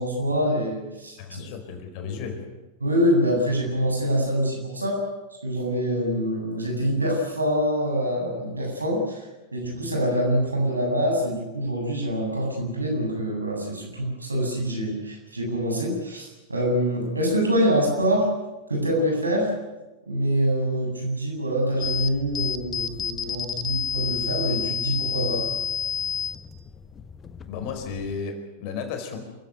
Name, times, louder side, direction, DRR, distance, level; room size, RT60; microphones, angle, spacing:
voice 1, 0.0-1.4 2.1-2.2 2.8-5.0 5.4-18.3 18.7-19.5 20.1-25.4, equal, 80° right, 1 dB, 7.9 m, -25 dB
voice 2, 1.2-2.5 27.4-29.3, left 5 dB, 45° left, 6 dB, 4.8 m, -34 dB
sound 1, 21.8-28.2, left 7 dB, 20° left, 1.4 m, -30 dB
27.5 x 16.0 x 9.5 m, 1.1 s
figure-of-eight pair, 90°, 0 cm